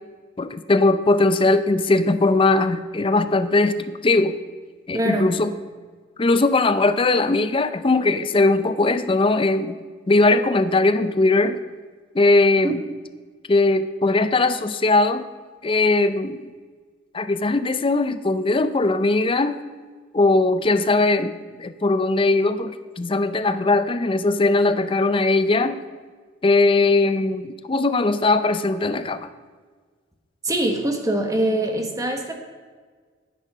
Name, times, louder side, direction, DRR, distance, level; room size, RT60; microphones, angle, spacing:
voice 1, 0.4-4.4 4.9-5.5 6.2-9.8 10.1-11.6 12.1-12.8 13.5-15.3 15.6-16.4 17.1-19.6 20.1-25.8 26.4-29.3, left 2 dB, 25° left, 12 dB, 0.5 m, -19 dB
voice 2, 4.9-5.3 12.6-12.7 30.4-32.3, right 1 dB, 15° right, 4 dB, 1.2 m, -23 dB
9.8 x 9.1 x 5.5 m, 1.5 s
head